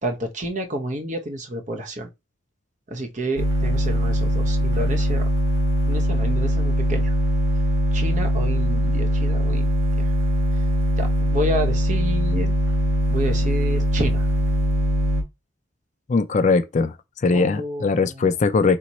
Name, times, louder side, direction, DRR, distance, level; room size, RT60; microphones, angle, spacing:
voice 1, 0.0-2.1 2.9-5.3 5.9-7.1 7.9-9.7 10.0-10.1 11.0-12.5 13.1-14.3 17.3-18.3, right 1 dB, 35° right, 0.8 m, -29 dB
sound 1, 3.4-15.2, equal, 80° right, 1.9 m, -21 dB
voice 2, 16.1-18.8, left 4 dB, 35° left, 0.4 m, -20 dB
4.5 x 2.9 x 4.1 m
head